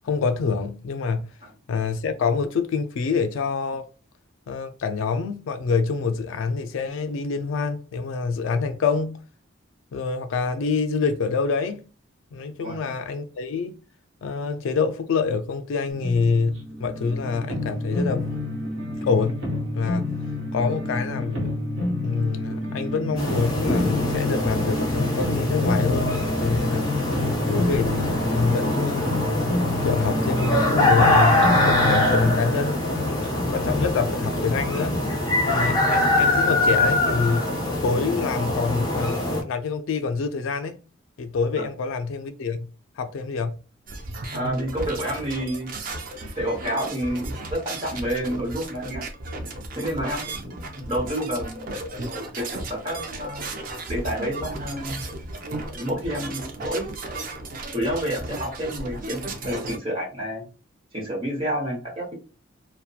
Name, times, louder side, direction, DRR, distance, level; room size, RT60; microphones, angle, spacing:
voice 1, 0.0-1.3 1.7-3.9 4.5-9.2 9.9-11.8 12.3-13.8 14.2-18.3 19.0-19.5 19.7-20.1 20.5-21.5 22.0-26.9 27.5-29.2 29.8-35.0 35.5-37.5 37.8-40.8 41.2-43.6, left 4 dB, 70° left, 0.3 m, -26 dB
sound 1, 15.9-35.0, left 2 dB, 65° right, 0.8 m, -29 dB
sound 2, 23.2-39.4, left 1 dB, 20° left, 0.5 m, -23 dB
sound 3, 43.9-59.8, right 2 dB, 45° right, 0.4 m, -35 dB
voice 2, 44.3-45.7 46.3-49.1 49.7-53.4 53.9-55.0 55.8-56.9 57.7-60.5 60.9-62.1, equal, 25° right, 1.0 m, -29 dB
2.7 x 2.1 x 2.3 m
head